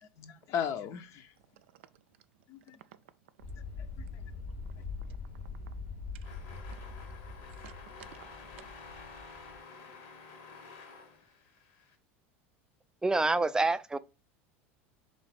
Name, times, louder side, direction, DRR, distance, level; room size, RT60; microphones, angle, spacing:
voice 1, 0.0-1.3 2.5-2.8 3.8-4.2 4.7-4.8, left 8 dB, 55° left, 0.6 m, -37 dB
voice 2, 1.5-2.0 2.8-2.9 5.1-5.2 6.7-6.9 7.5-8.7, right 12 dB, 80° right, 0.4 m, -55 dB
sound 1, 3.4-9.6, left 4 dB, 90° left, 1.4 m, -43 dB
sound 2, 6.2-12.0, left 4 dB, 70° left, 1.1 m, -51 dB
voice 3, 13.0-14.0, right 3 dB, 10° right, 0.3 m, -27 dB
3.8 x 3.2 x 4.1 m
hypercardioid pair, 90°, 6 cm